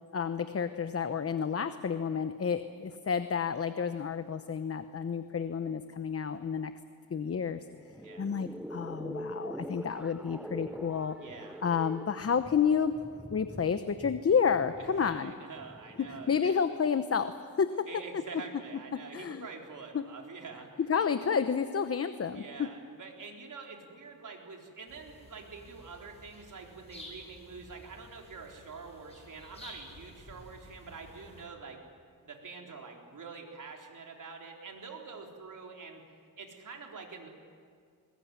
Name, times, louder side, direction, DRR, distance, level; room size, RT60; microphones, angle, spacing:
voice 1, 0.1-6.7 7.1-7.6 8.2-11.2 11.6-12.9 13.3-15.3 16.3-17.9 19.1-19.5 19.9-20.0 20.9-22.7, left 6 dB, 40° left, 10 dB, 1.0 m, -30 dB
sound 1, 7.7-16.5, right 1 dB, 5° right, 0.7 m, -44 dB
voice 2, 8.0-8.4 11.2-11.6 14.8-16.6 17.9-20.7 22.3-31.9 32.2-36.0 36.4-37.3, right 4 dB, 55° right, 1 dB, 4.0 m, -46 dB
sound 2, 24.9-31.5, left 1 dB, 15° left, 7.6 m, -52 dB
21.0 x 21.0 x 9.6 m, 2.1 s
cardioid pair, 95°, 37 cm